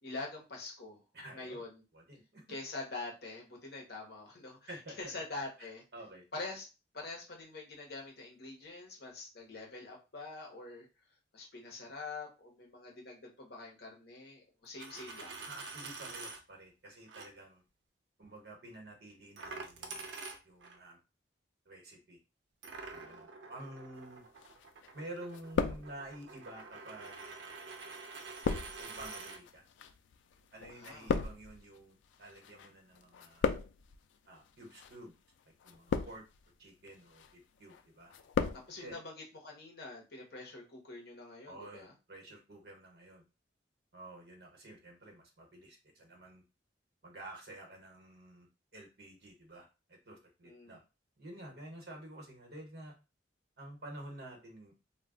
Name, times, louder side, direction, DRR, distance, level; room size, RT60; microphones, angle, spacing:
voice 1, 0.0-1.0 1.3-1.8 2.5-4.7 5.0-5.8 6.3-6.7 6.9-10.9 11.3-15.4 22.9-23.3 30.7-31.1 38.5-41.9 50.4-50.8, left 3 dB, 60° left, -1 dB, 0.9 m, -45 dB
voice 2, 1.1-1.6 1.9-2.4 4.7-5.1 5.9-6.2 15.4-17.6 18.2-20.0 20.4-21.0 21.7-22.2 22.9-24.2 24.9-27.2 28.8-29.6 30.5-33.5 34.3-35.1 35.6-36.2 36.6-38.1 38.8-39.0 41.5-43.2 43.9-46.4 47.0-50.8 51.2-52.9 53.6-54.7, right 1 dB, 60° right, 1 dB, 0.9 m, -50 dB
Coin (dropping), 14.6-16.4 17.1-17.3 19.4-20.8 22.6-29.4, right 3 dB, 80° right, 0.5 m, -47 dB
sound 1, 24.4-25.0 25.3-26.3 27.0-32.7 33.0-34.0 34.7-35.0 35.6-36.4 36.9-37.3 37.7-38.7 38.9-39.0, left 5 dB, 85° left, 0.3 m, -36 dB
2.3 x 2.1 x 3.6 m, 0.29 s
head